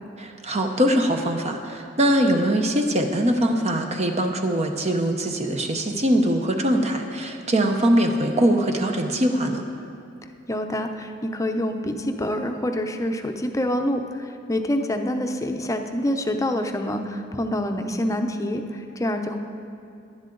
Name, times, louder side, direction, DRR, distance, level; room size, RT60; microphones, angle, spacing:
voice 1, 0.2-9.6, right 1 dB, 35° right, 4 dB, 0.7 m, -22 dB
voice 2, 10.5-19.4, left 1 dB, 15° left, 5 dB, 0.7 m, -26 dB
19.0 x 10.5 x 3.9 m, 2.5 s
head